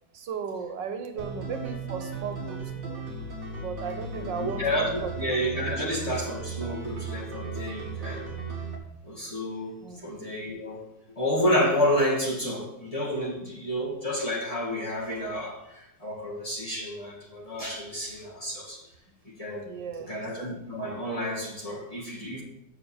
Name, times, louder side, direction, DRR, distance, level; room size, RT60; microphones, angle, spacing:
voice 1, 0.1-3.0 3.6-4.7 5.0-5.1 5.7-5.9 9.8-10.0 19.6-20.1, right 6 dB, 90° right, 7 dB, 1.6 m, -36 dB
sound 1, 1.2-8.8, right 4 dB, 50° right, 1.8 m, -36 dB
voice 2, 4.1-8.3 9.0-10.8 11.2-18.8 19.2-19.7 20.1-22.4, equal, 20° left, -4 dB, 1.9 m, -30 dB
7.2 x 5.9 x 7.1 m, 0.87 s
omnidirectional pair, 1.9 m